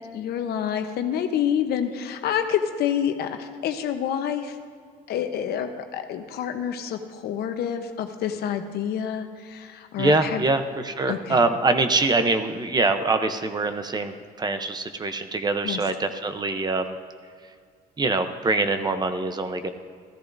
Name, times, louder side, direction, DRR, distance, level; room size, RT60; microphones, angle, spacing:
voice 1, 0.1-4.6 5.1-10.4 11.1-11.4 15.6-15.8, left 9 dB, 70° left, 7 dB, 0.9 m, -28 dB
voice 2, 10.0-17.0 18.0-19.7, right 3 dB, 25° right, 9 dB, 0.7 m, -24 dB
14.0 x 13.5 x 2.6 m, 2.1 s
cardioid pair, 110°, 17 cm